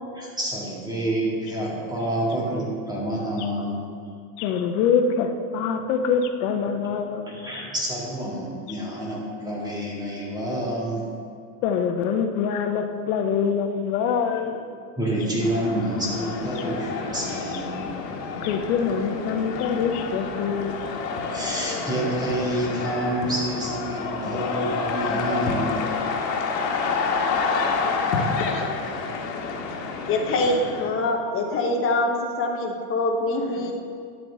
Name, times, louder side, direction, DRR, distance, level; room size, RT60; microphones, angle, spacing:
voice 1, 0.1-3.9 5.8-5.9 6.6-6.8 7.3-11.1 15.0-17.9 21.2-25.8, right 1 dB, 10° right, -5 dB, 2.2 m, -28 dB
voice 2, 4.4-7.3 7.5-7.6 11.6-14.6 16.6-16.7 18.4-20.8, left 6 dB, 55° left, 6 dB, 1.0 m, -24 dB
sound 1, 15.4-30.9, left 4 dB, 85° left, 1.5 m, -28 dB
voice 3, 27.8-28.8 30.1-33.7, left 2 dB, 25° left, 1 dB, 1.2 m, -25 dB
11.5 x 7.7 x 3.6 m, 2.4 s
supercardioid pair, 140°, 49 cm